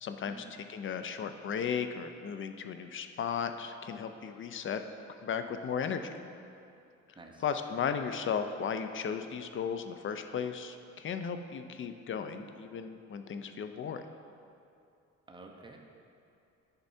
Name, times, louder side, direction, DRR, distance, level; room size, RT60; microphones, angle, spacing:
voice 1, 0.0-4.8 5.2-6.1 7.4-14.1, left 7 dB, 40° left, 8 dB, 0.5 m, -35 dB
voice 2, 15.3-15.8, right 3 dB, 15° right, 1 dB, 0.9 m, -50 dB
10.5 x 5.5 x 2.7 m, 2.6 s
cardioid pair, 90°, 30 cm